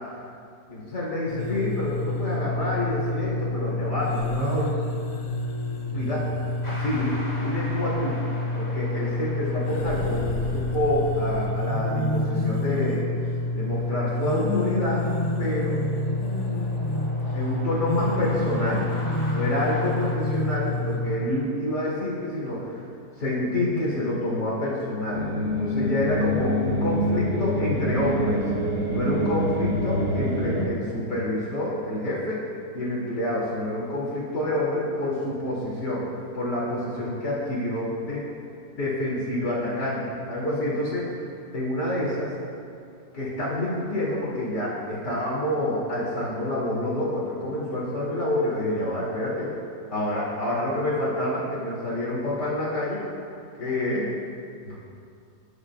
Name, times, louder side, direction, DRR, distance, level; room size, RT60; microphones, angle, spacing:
voice 1, 0.7-4.7 5.9-6.2 6.7-8.2 8.5-13.0 13.5-15.0 15.4-15.8 17.3-18.9 19.3-22.8 23.2-28.5 28.9-32.5 32.7-38.2 38.8-41.1 41.5-42.3 43.1-49.5 49.9-53.0 53.6-54.1 54.6-54.8, left 1 dB, 70° left, -6 dB, 3.4 m, -28 dB
sound 1, 1.3-21.2, left 2 dB, 90° left, 1.9 m, -28 dB
sound 2, 6.6-20.2, equal, 15° left, 2.5 m, -43 dB
sound 3, 25.1-30.7, equal, 60° right, 3.7 m, -26 dB
25.5 x 11.5 x 2.4 m, 2.4 s
omnidirectional pair, 1.8 m